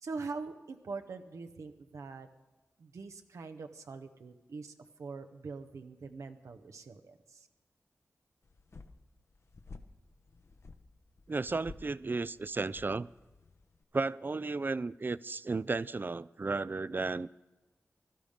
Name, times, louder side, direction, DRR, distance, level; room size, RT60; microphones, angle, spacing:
voice 1, 0.0-2.3 2.8-4.7 5.0-7.5, right 4 dB, 90° right, 0.8 m, -43 dB
sound 1, 8.4-13.8, left 3 dB, 65° left, 0.9 m, -53 dB
voice 2, 11.3-13.1 13.9-17.3, right 3 dB, 40° right, 0.4 m, -34 dB
16.0 x 12.0 x 5.0 m
cardioid pair, 45°, 5 cm